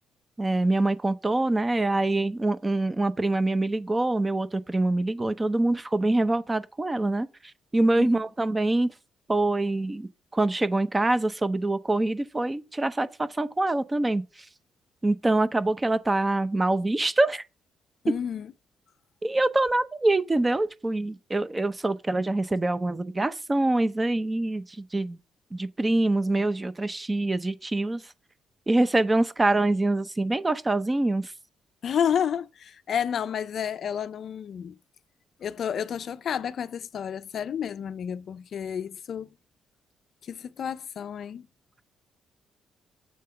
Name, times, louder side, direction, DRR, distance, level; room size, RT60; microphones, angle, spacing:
voice 1, 0.4-7.3 7.7-8.9 9.3-14.2 15.0-17.4 19.2-25.2 25.5-28.0 28.7-31.3, right 2 dB, 20° right, 0.7 m, -25 dB
voice 2, 18.0-18.5 31.8-34.8 35.4-39.3 40.2-41.5, left 8 dB, 60° left, 0.4 m, -30 dB
7.6 x 3.5 x 5.7 m
cardioid pair, 90°, 0 cm